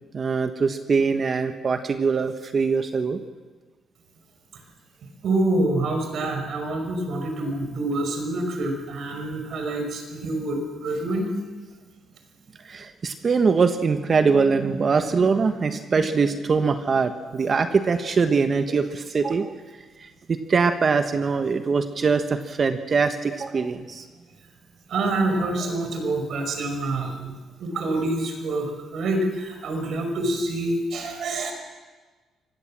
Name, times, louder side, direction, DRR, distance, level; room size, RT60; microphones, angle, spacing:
voice 1, 0.1-3.2 12.6-19.5 20.0-24.0, right 5 dB, 40° right, 8 dB, 1.3 m, -22 dB
voice 2, 5.2-11.4 24.9-31.5, right 2 dB, 65° right, 4 dB, 5.3 m, -26 dB
24.0 x 18.5 x 7.5 m, 1.4 s
cardioid pair, 90°, 0 cm